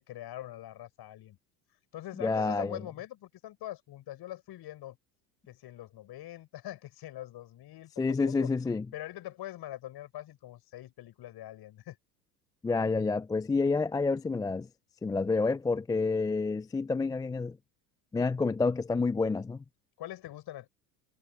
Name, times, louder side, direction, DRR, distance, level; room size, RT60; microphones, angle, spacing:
voice 1, 0.0-1.4 1.9-5.0 5.5-8.5 8.9-12.0 20.0-20.7, left 14 dB, 50° left, 7.2 m, -43 dB
voice 2, 2.2-2.8 8.0-8.9 12.6-14.7 15.0-17.6 18.1-19.6, left 4 dB, 10° left, 0.4 m, -28 dB
hypercardioid pair, 80°, 50 cm